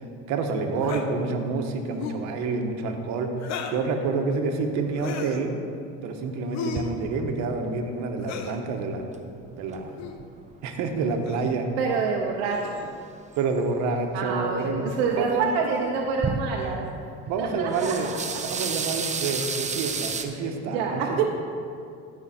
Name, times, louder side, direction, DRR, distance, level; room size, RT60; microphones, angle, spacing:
voice 1, 0.3-3.3 3.7-5.5 6.0-9.0 9.6-9.9 10.6-11.7 13.4-14.9 15.2-15.5 17.3-18.1 18.5-21.2, right 4 dB, 70° right, 4 dB, 1.3 m, -28 dB
sound 1, 0.8-1.1 1.9-2.3 3.4-3.9 4.9-5.4 6.5-6.9 8.2-8.6 9.9-10.2 11.2-11.5 12.4-12.9 14.6-14.7 15.7-15.9 16.6-16.8 17.6-17.8 19.3-19.7, left 7 dB, 65° left, 0.9 m, -36 dB
sound 2, 6.7-10.4 10.7-11.8 12.0-12.1 12.5-13.9 14.3-15.5 15.9-16.9 17.2-20.2, right 5 dB, 25° right, 0.8 m, -33 dB
voice 2, 11.8-12.8 14.1-16.9 17.4-18.4 20.3-21.2, right 5 dB, 90° right, -1 dB, 0.9 m, -27 dB
15.0 x 5.6 x 4.3 m, 2.5 s
supercardioid pair, 95°, 30 cm